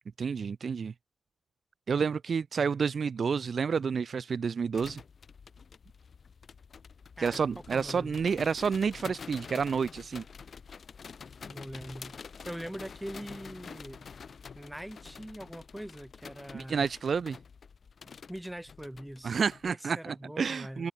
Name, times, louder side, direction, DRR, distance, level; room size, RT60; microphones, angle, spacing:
voice 1, 0.2-0.9 1.9-5.0 7.2-10.2 16.5-17.4 19.2-20.9, right 6 dB, 70° right, 0.4 m, -30 dB
sound 1, 4.7-19.7, left 6 dB, 65° left, 1.2 m, -48 dB
voice 2, 7.7-8.2 11.5-12.2 12.4-14.1 14.6-16.9 18.3-20.9, right 1 dB, 5° right, 1.3 m, -42 dB
cardioid pair, 65°, 0 cm